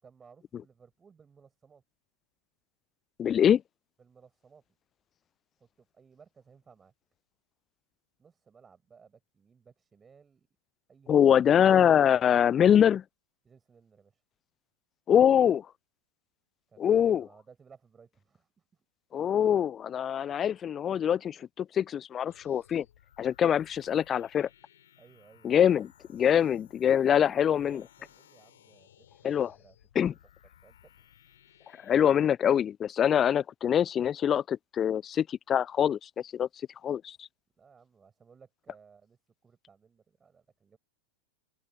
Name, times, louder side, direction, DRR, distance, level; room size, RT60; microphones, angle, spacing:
voice 1, 0.0-1.8 4.0-4.6 5.6-6.9 8.2-10.5 10.9-11.2 13.4-14.2 16.7-18.9 25.0-25.7 27.0-29.8 30.1-30.2 30.6-30.9 37.6-40.8, right 6 dB, 20° right, 7.1 m, -58 dB
voice 2, 3.2-3.6 11.1-13.0 15.1-15.7 16.8-17.2 19.1-22.9 23.2-24.5 25.4-27.8 29.2-29.5 30.0-30.1 31.8-36.5 36.8-37.3, left 9 dB, 25° left, 0.4 m, -24 dB
sound 1, 22.3-32.2, left 10 dB, 60° left, 7.7 m, -60 dB
open air
figure-of-eight pair, 90°, 0 cm